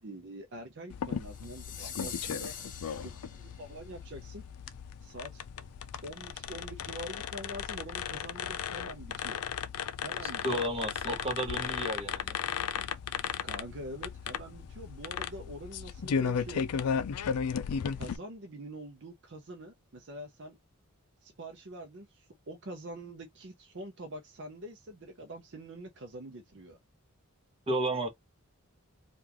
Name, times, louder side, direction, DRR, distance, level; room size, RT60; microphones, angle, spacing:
voice 1, 0.0-2.5 3.0-4.4 5.0-5.4 6.0-9.5 10.0-10.7 13.4-16.7 18.0-20.6 21.2-26.8, right 1 dB, 55° right, 0.6 m, -45 dB
sound 1, 0.9-18.2, left 7 dB, 90° left, 0.4 m, -36 dB
sound 2, 1.3-3.7, left 7 dB, 35° left, 0.8 m, -43 dB
voice 2, 10.4-12.3 27.7-28.1, right 1 dB, 25° right, 1.0 m, -32 dB
3.7 x 2.4 x 2.9 m
head